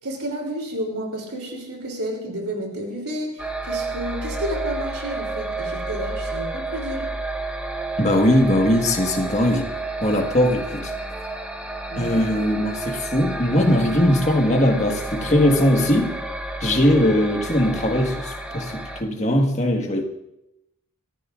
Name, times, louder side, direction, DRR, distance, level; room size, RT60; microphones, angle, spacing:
voice 1, 0.0-7.2 11.9-12.2, equal, 75° right, 1 dB, 3.3 m, -31 dB
sound 1, 3.4-19.0, right 2 dB, 5° right, 1.1 m, -30 dB
voice 2, 8.0-9.7 10.0-10.9 11.9-16.2 16.6-20.0, left 1 dB, 30° left, 2 dB, 1.6 m, -20 dB
25.0 x 14.0 x 2.5 m, 0.87 s
head